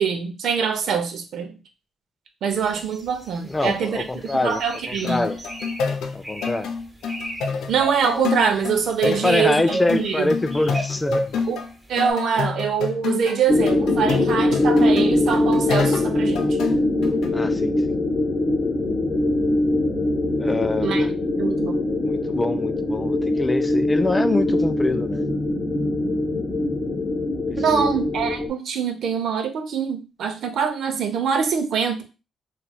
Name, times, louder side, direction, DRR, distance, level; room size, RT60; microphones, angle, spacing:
voice 1, 0.0-1.6 2.4-4.1 4.4-5.2 7.7-10.3 11.5-11.6 11.9-16.4 20.8-21.8 27.6-32.0, right 7 dB, 70° right, 0.6 m, -24 dB
sound 1, 2.6-3.8 4.2-5.8 6.2-6.6 7.0-7.4 7.7-9.0 9.4-11.4 12.0-12.1, equal, 15° right, 1.1 m, -31 dB
voice 2, 3.5-4.6 5.0-5.4 6.1-6.7 9.0-11.3 17.3-18.0 20.4-21.1 22.0-25.3 27.5-28.0, left 2 dB, 20° left, 0.3 m, -25 dB
sound 2, 5.0-11.7 12.0-13.4 13.7-17.3, left 5 dB, 80° left, 0.4 m, -28 dB
sound 3, 13.5-28.5, left 2 dB, 35° left, 0.7 m, -22 dB
3.0 x 2.9 x 2.2 m
cardioid pair, 75°, 0 cm